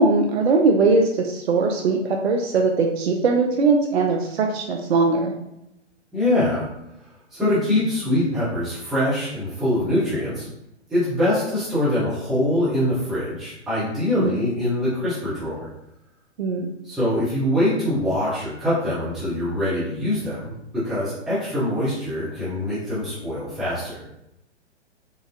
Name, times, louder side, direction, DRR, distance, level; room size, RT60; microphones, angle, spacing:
voice 1, 0.0-5.3 14.2-14.4 16.4-16.6, right 3 dB, 60° right, 2 dB, 0.5 m, -20 dB
voice 2, 6.1-6.7 7.3-10.5 10.9-15.7 16.8-24.0, left 1 dB, ahead, -12 dB, 0.3 m, -23 dB
3.8 x 2.4 x 2.5 m, 0.83 s
figure-of-eight pair, 120°, 36 cm